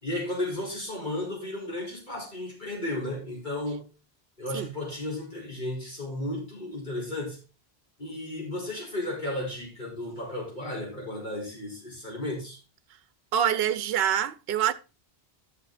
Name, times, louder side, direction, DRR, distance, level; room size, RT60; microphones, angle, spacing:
voice 1, 0.0-3.9 4.4-7.4 8.0-12.6, left 1 dB, 45° left, 4.9 m, -34 dB
voice 2, 13.3-14.7, right 9 dB, 70° right, 0.8 m, -25 dB
11.0 x 6.7 x 4.0 m
omnidirectional pair, 1.1 m